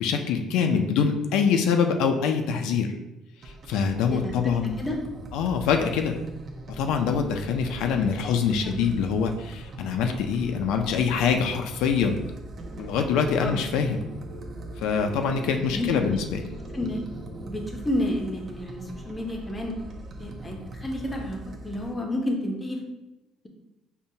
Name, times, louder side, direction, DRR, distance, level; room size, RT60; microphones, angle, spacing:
voice 1, 0.0-2.9 3.7-4.8 5.3-6.2 6.7-12.2 12.8-14.0 14.8-16.4, left 6 dB, 85° left, 5 dB, 0.3 m, -24 dB
sound 1, 3.4-21.9, right 1 dB, 35° right, 0.4 m, -41 dB
voice 2, 4.1-5.0 8.6-8.9 13.4-13.6 15.7-16.2 16.7-17.0 17.4-19.7 20.2-21.4 21.6-22.8, left 1 dB, 15° left, 1 dB, 0.5 m, -30 dB
sound 2, 12.6-17.7, right 3 dB, 50° right, 0.8 m, -43 dB
5.3 x 2.1 x 2.7 m, 0.96 s
cardioid pair, 145°, 0 cm